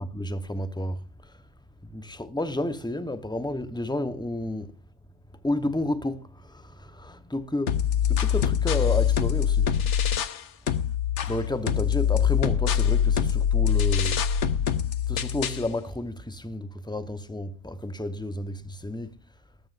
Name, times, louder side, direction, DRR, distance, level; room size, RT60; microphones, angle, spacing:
voice 1, 0.0-1.4 1.8-4.8 5.4-9.8 11.2-14.3 15.1-19.2, left 1 dB, 5° left, 0.7 m, -31 dB
sound 1, 7.7-10.4 10.7-15.7, left 8 dB, 60° left, 1.1 m, -24 dB
19.0 x 13.0 x 2.5 m
omnidirectional pair, 1.5 m